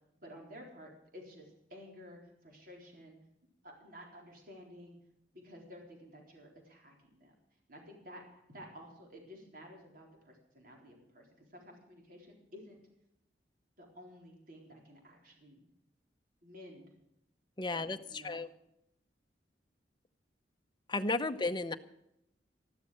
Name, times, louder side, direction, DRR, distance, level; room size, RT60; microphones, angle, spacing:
voice 1, 0.2-3.2 3.6-5.0 5.3-7.3 7.7-12.8 13.8-15.6 16.4-16.9 17.7-18.4 21.3-21.5, equal, 50° right, 0 dB, 4.1 m, -53 dB
voice 2, 17.6-18.0 18.2-18.5 20.9-21.8, left 3 dB, 25° left, 9 dB, 0.8 m, -33 dB
14.0 x 12.5 x 6.3 m, 0.81 s
head